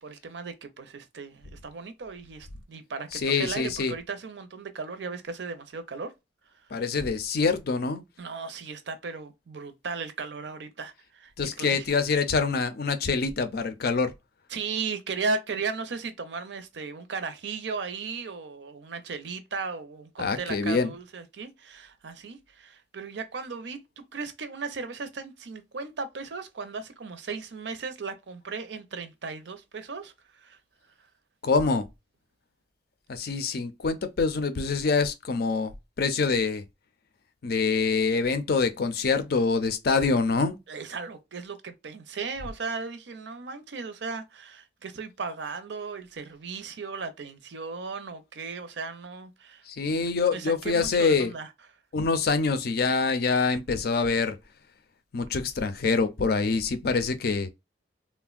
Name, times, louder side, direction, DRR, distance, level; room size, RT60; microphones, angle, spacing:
voice 1, 0.0-6.1 8.2-11.9 14.5-30.6 40.7-49.6 50.3-51.5, right 4 dB, 70° right, 0.6 m, -36 dB
voice 2, 3.1-4.0 6.7-8.0 11.4-14.1 20.2-20.9 31.4-31.8 33.1-36.6 37.4-40.6 49.7-51.3 51.9-54.3 55.1-57.5, left 4 dB, 55° left, 0.5 m, -25 dB
3.4 x 2.1 x 2.3 m
head